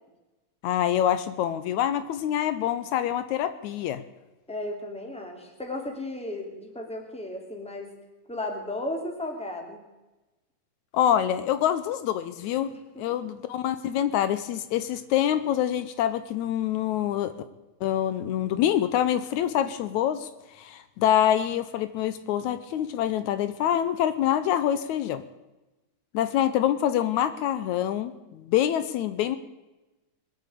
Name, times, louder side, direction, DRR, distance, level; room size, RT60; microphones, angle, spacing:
voice 1, 0.6-4.0 10.9-12.7 13.0-17.3 17.8-20.3 20.6-25.2 26.1-29.4, left 11 dB, 80° left, 12 dB, 2.1 m, -26 dB
voice 2, 4.5-7.9 8.3-9.8 12.7-13.2, left 1 dB, ahead, 2 dB, 2.4 m, -35 dB
21.0 x 8.2 x 8.4 m, 1.1 s
omnidirectional pair, 3.4 m